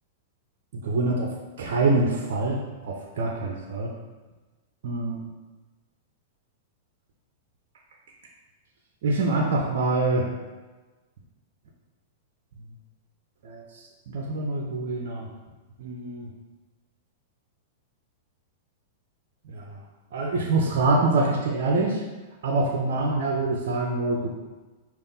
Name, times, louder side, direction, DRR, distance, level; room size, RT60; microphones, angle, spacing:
voice 1, 0.8-1.3 1.6-3.9 4.8-5.2 9.0-10.3 13.4-13.6 14.1-15.3 15.8-16.3 19.5-19.7 20.1-22.0 22.4-24.3, right 2 dB, 65° right, 1 dB, 0.6 m, -25 dB
5.2 x 2.5 x 3.9 m, 1.2 s
hypercardioid pair, 105°, 0 cm